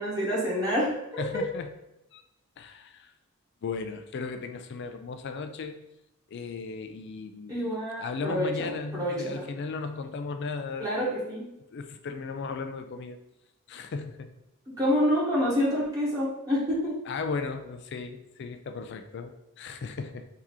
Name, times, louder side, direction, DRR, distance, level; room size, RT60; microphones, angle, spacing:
voice 1, 0.0-1.2 7.5-9.4 10.8-11.5 14.8-17.0, equal, 15° right, -7 dB, 1.4 m, -27 dB
voice 2, 1.2-1.7 2.1-2.2 2.6-3.1 3.6-5.8 6.3-7.7 8.0-10.9 11.7-13.2 13.7-14.3 17.1-20.2, left 4 dB, 50° left, 7 dB, 0.4 m, -36 dB
3.6 x 2.8 x 4.7 m, 0.90 s
head